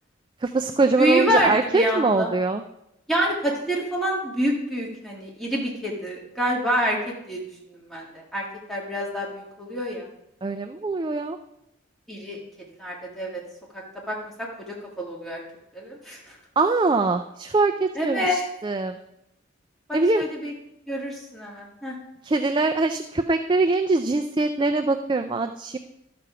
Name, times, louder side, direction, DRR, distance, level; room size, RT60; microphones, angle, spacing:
voice 1, 0.4-2.6 10.4-11.4 16.6-19.0 19.9-20.2 22.2-25.8, right 3 dB, 25° right, 6 dB, 0.3 m, -23 dB
voice 2, 1.0-2.3 3.1-7.4 7.7-10.1 12.1-12.4 12.8-13.4 13.7-14.1 14.7-15.4 15.7-16.4 17.9-18.4 19.9-20.5 20.9-22.0, equal, ahead, -4 dB, 1.7 m, -27 dB
12.5 x 6.9 x 4.8 m, 0.86 s
head